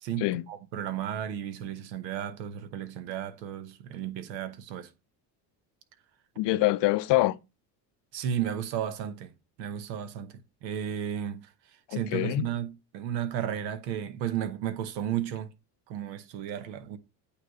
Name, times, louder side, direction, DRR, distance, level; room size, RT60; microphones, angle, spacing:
voice 1, 0.0-4.9 8.1-9.3 9.6-11.5 11.9-15.5 15.9-17.0, right 9 dB, 90° right, 1.0 m, -33 dB
voice 2, 6.4-7.4 11.9-12.5, left 18 dB, 60° left, 0.6 m, -25 dB
8.7 x 3.4 x 4.6 m
supercardioid pair, 85°, 50 cm